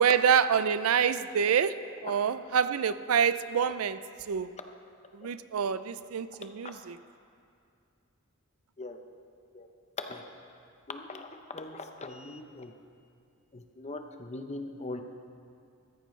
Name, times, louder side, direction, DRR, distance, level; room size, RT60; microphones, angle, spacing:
voice 1, 0.0-1.7 2.0-4.0 4.3-4.5 5.2-6.9, right 7 dB, 90° right, 14 dB, 0.4 m, -26 dB
voice 2, 10.9-12.7 13.5-15.0, left 2 dB, 30° left, 5 dB, 0.8 m, -41 dB
15.0 x 14.0 x 3.3 m, 2.4 s
head